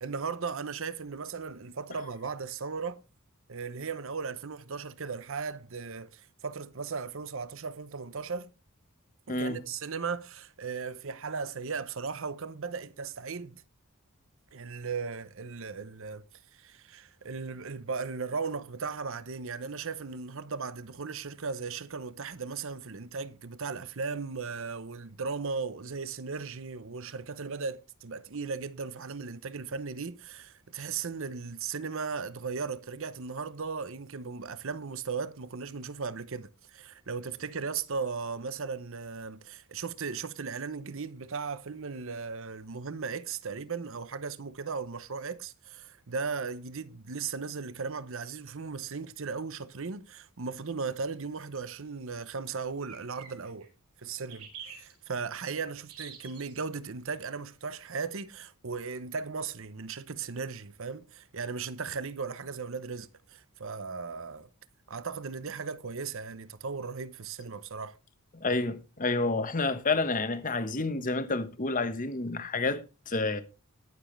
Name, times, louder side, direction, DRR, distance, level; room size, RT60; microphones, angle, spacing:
voice 1, 0.0-3.0 3.5-8.5 9.3-13.6 14.5-16.2 16.5-53.7 54.0-64.5 64.9-68.0, right 5 dB, 60° right, 0.8 m, -37 dB
voice 2, 9.3-9.6 68.3-73.4, left 3 dB, 35° left, 1.1 m, -29 dB
sound 1, 49.8-49.9 52.8-53.7 54.3-54.9 55.9-56.6, right 7 dB, 85° right, 5.1 m, -46 dB
20.0 x 7.3 x 3.3 m
head